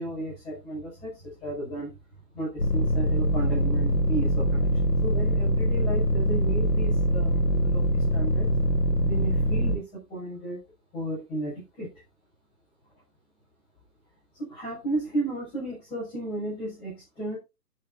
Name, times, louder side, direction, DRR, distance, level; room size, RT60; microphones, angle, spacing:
voice 1, 0.0-1.9 2.3-4.7 5.0-8.5 9.0-10.6 10.9-11.9 14.4-17.4, right 2 dB, 10° left, -8 dB, 6.1 m, -34 dB
sound 1, 2.6-9.8, equal, 75° left, 3.2 m, -23 dB
19.0 x 6.9 x 2.7 m, 0.24 s
hypercardioid pair, 155°, 48 cm